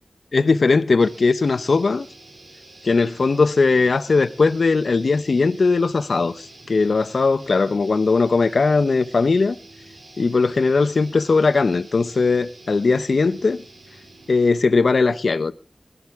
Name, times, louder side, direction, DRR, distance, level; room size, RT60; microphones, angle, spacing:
voice 1, 0.3-2.1 2.8-9.6 10.2-13.6 14.3-15.5, left 4 dB, 70° left, 0.7 m, -19 dB
sound 1, 1.0-14.7, right 2 dB, 60° right, 2.8 m, -47 dB
19.0 x 12.5 x 3.5 m
wide cardioid pair, 95°, 0 cm